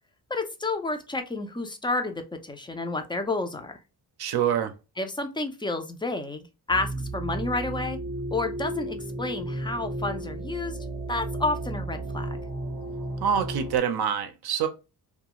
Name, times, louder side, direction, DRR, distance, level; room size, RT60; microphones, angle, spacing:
voice 1, 0.3-3.8 5.0-8.0 8.3-10.8 11.1-12.4, left 2 dB, 15° left, 0.3 m, -30 dB
voice 2, 4.2-4.7 13.2-14.7, right 8 dB, 65° right, 0.5 m, -25 dB
sound 1, 6.7-13.8, right 2 dB, 25° right, 0.7 m, -33 dB
2.3 x 2.2 x 2.8 m
wide cardioid pair, 140°, 40 cm